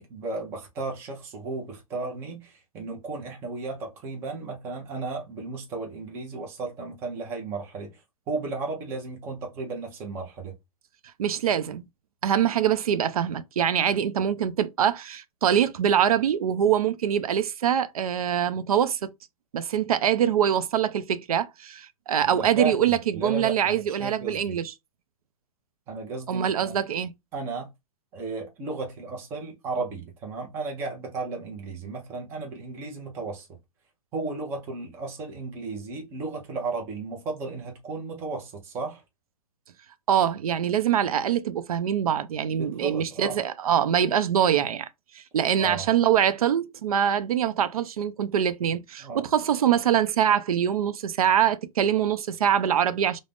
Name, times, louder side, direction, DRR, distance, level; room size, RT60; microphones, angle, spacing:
voice 1, 0.0-10.6 22.2-24.6 25.9-26.8 27.3-27.7 28.1-33.5 34.1-39.0 42.5-43.4 45.6-45.9 49.0-49.2, right 3 dB, 15° right, 0.5 m, -34 dB
voice 2, 11.2-11.8 12.2-19.1 19.5-24.7 26.3-27.1 40.1-44.9 45.1-53.2, right 9 dB, 80° right, 0.4 m, -24 dB
2.4 x 2.0 x 3.3 m
hypercardioid pair, 160°, 18 cm